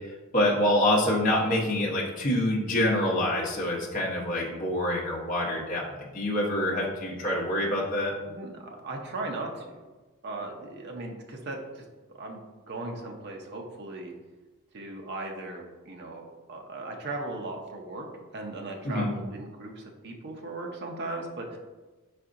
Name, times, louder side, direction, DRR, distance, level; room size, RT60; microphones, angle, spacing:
voice 1, 0.3-8.1 18.8-19.1, left 1 dB, 40° left, -4 dB, 0.9 m, -26 dB
voice 2, 8.2-9.7 10.2-11.8 12.2-14.1 14.7-18.1 18.3-21.6, right 2 dB, 50° right, 1 dB, 0.6 m, -37 dB
4.8 x 4.2 x 2.5 m, 1.2 s
head